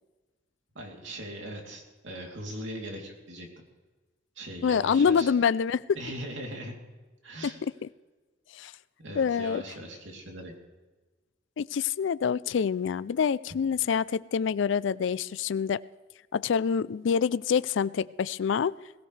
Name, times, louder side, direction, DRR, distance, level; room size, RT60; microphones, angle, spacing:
voice 1, 0.7-3.5 4.3-5.3 5.9-6.7 7.2-7.6 9.0-10.5, right 1 dB, 65° right, 0 dB, 3.1 m, -40 dB
voice 2, 4.6-5.8 8.5-8.7 9.2-9.6 11.6-15.8 16.3-18.7, left 6 dB, 65° left, 18 dB, 0.4 m, -26 dB
21.5 x 16.0 x 3.3 m, 1.3 s
head